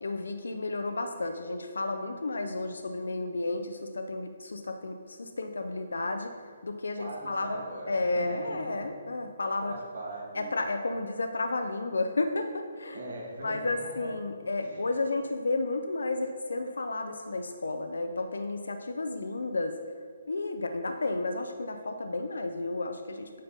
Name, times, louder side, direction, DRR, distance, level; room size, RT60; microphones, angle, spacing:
voice 1, 0.0-6.3 6.6-7.6 7.9-9.7 10.4-13.0 13.4-19.8 20.3-23.4, left 2 dB, 80° left, 6 dB, 0.6 m, -32 dB
voice 2, 7.0-8.8 9.6-10.5 12.9-14.1 14.6-14.8, right 2 dB, 65° right, -3 dB, 2.3 m, -40 dB
9.1 x 6.6 x 4.0 m, 2.1 s
hypercardioid pair, 150°, 0 cm